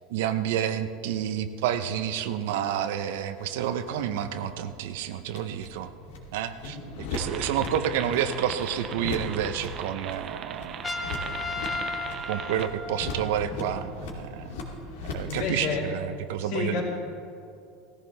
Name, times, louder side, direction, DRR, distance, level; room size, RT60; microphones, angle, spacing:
voice 1, 0.1-5.9 6.3-6.8 7.1-10.9 12.3-14.6 15.1-16.8, right 9 dB, 70° right, 9 dB, 0.7 m, -29 dB
sound 1, 3.4-15.4, left 2 dB, 80° left, 2.6 m, -39 dB
sound 2, 7.1-12.7, right 8 dB, 25° right, 0.5 m, -39 dB
Trumpet, 10.8-13.5, left 3 dB, 10° left, 0.7 m, -34 dB
voice 2, 15.2-15.8 16.4-16.8, left 5 dB, 60° left, -3 dB, 3.4 m, -30 dB
18.0 x 14.5 x 3.4 m, 2.6 s
supercardioid pair, 180°, 0 cm